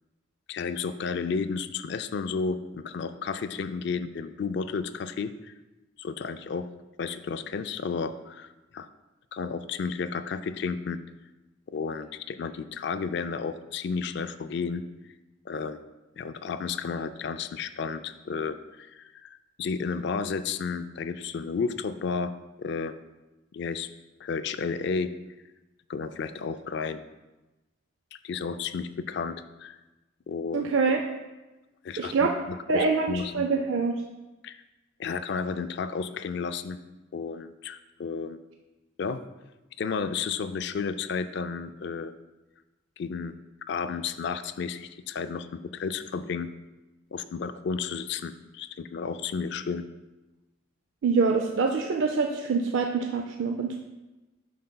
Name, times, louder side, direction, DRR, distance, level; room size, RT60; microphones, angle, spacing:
voice 1, 0.5-5.5 6.0-6.7 7.0-8.5 8.7-8.9 9.3-11.0 11.7-14.8 15.5-15.8 16.2-22.3 22.6-22.9 23.5-23.9 24.2-25.1 25.9-27.0 28.1-29.8 30.3-30.7 31.8-33.4 34.4-34.6 35.0-36.8 37.1-38.4 39.0-39.2 39.8-42.1 43.0-43.3 43.7-46.5 47.1-49.8, left 5 dB, 55° left, 11 dB, 0.3 m, -32 dB
voice 2, 30.5-31.0 32.0-32.3 32.7-34.0 51.0-53.8, right 4 dB, 65° right, 3 dB, 0.4 m, -25 dB
9.2 x 6.5 x 2.2 m, 1.1 s
head